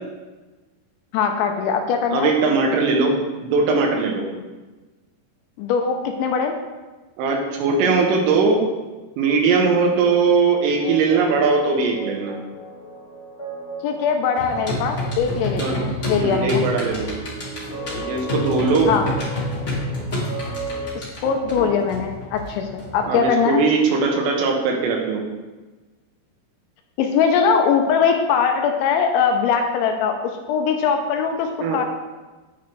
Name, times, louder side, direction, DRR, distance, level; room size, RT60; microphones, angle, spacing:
voice 1, 1.1-2.3 5.6-6.5 13.8-16.7 18.9-19.1 21.0-23.6 27.0-31.8, left 6 dB, 85° left, 4 dB, 2.9 m, -21 dB
voice 2, 2.1-3.1 3.4-4.3 7.2-8.6 9.2-12.4 15.6-15.8 16.2-17.1 17.9-18.9 23.1-25.2 31.6-31.8, right 4 dB, 85° right, 0 dB, 3.8 m, -20 dB
sound 1, 10.6-20.9, right 2 dB, 5° left, 2.4 m, -36 dB
sound 2, 14.4-23.2, left 1 dB, 25° left, 1.7 m, -29 dB
10.0 x 9.4 x 3.3 m, 1.2 s
omnidirectional pair, 5.7 m